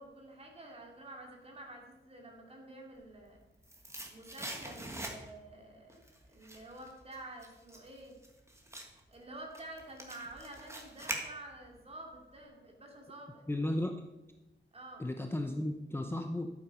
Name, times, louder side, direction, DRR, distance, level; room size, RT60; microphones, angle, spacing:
voice 1, 0.0-3.4 4.1-6.0 6.3-8.1 9.1-13.4 14.7-15.1, right 1 dB, 30° right, 0 dB, 2.9 m, -49 dB
sound 1, 3.1-5.5 5.9-11.8 12.1-12.2, right 1 dB, 15° right, 1.8 m, -44 dB
voice 2, 13.5-14.0 15.0-16.5, left 1 dB, 10° left, 4 dB, 0.7 m, -34 dB
12.5 x 8.9 x 5.6 m, 1.0 s
wide cardioid pair, 160°, 20 cm